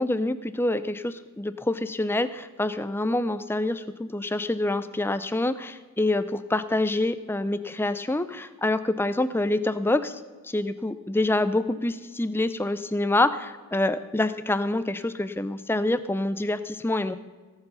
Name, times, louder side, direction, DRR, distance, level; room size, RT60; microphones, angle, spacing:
voice 1, 0.0-17.1, left 2 dB, 10° left, 13 dB, 0.4 m, -26 dB
17.5 x 6.9 x 5.6 m, 1.4 s
head